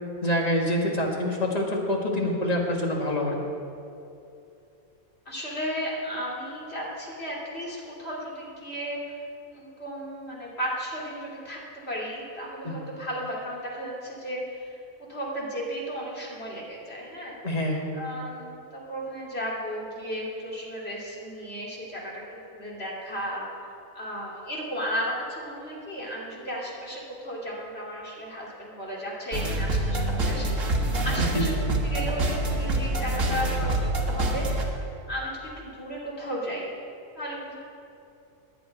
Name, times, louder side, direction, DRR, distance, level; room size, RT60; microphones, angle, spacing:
voice 1, 0.2-3.4 12.6-12.8 17.4-17.9 31.3-31.5, left 1 dB, 30° left, -1 dB, 1.8 m, -26 dB
voice 2, 5.3-9.2 9.5-14.8 15.1-17.4 17.9-23.4 23.9-31.5 31.9-33.7 34.1-34.5 35.1-36.7 37.2-37.5, equal, 45° left, -4 dB, 2.9 m, -34 dB
sound 1, 29.3-34.6, right 1 dB, 60° right, 1.8 m, -26 dB
10.5 x 9.6 x 9.2 m, 2.7 s
omnidirectional pair, 1.5 m